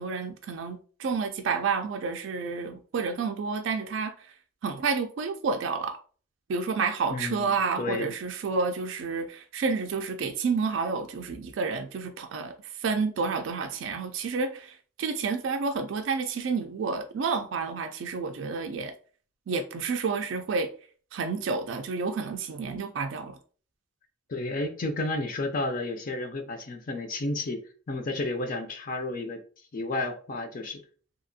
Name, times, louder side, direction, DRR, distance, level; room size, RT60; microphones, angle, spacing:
voice 1, 0.0-4.1 4.6-6.0 6.5-18.9 19.5-20.7 21.1-23.4, right 4 dB, 65° right, 0.3 m, -30 dB
voice 2, 7.1-8.1 24.3-29.4 29.7-30.8, left 2 dB, 45° left, 0.4 m, -32 dB
2.8 x 2.4 x 2.6 m
head